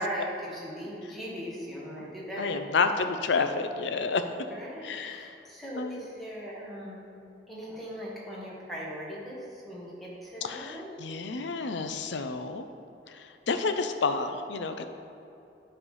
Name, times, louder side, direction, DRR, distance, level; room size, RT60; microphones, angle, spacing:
voice 1, 0.0-2.7 4.5-7.0 7.5-10.9, equal, ahead, -6 dB, 1.4 m, -38 dB
voice 2, 2.4-4.2 4.8-5.4 5.8-6.0 10.4-12.7 13.1-14.8, left 4 dB, 80° left, 8 dB, 0.5 m, -30 dB
9.8 x 3.3 x 5.4 m, 2.8 s
head